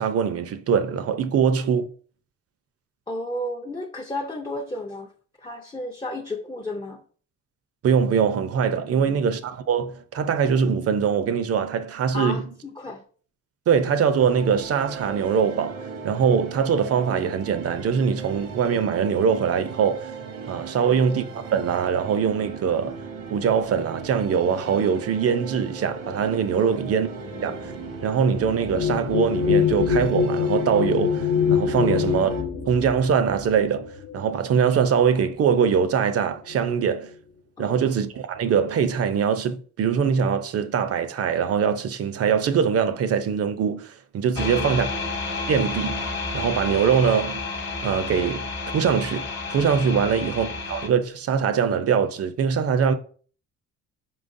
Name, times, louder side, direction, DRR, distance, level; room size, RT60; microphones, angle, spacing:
voice 1, 0.0-1.9 7.8-12.4 13.7-20.1 20.5-23.0 23.3-27.1 27.4-27.7 28.0-32.3 32.7-37.1 37.6-44.9 45.5-47.4 47.8-52.9, right 7 dB, 50° right, 0.6 m, -23 dB
voice 2, 3.1-5.1 5.4-7.0 8.9-9.2 12.1-13.0 20.7-21.0 26.6-26.8 31.8-32.0 37.6-37.8 44.4-44.8 50.0-50.4, left 1 dB, 15° left, 0.5 m, -33 dB
sound 1, 14.2-32.4, right 5 dB, 85° right, 1.0 m, -37 dB
sound 2, 26.0-34.9 35.8-36.0 36.3-36.9, left 7 dB, 65° left, 0.9 m, -26 dB
sound 3, 44.4-50.9, left 3 dB, 40° left, 1.0 m, -30 dB
4.5 x 3.9 x 2.6 m
cardioid pair, 90°, 30 cm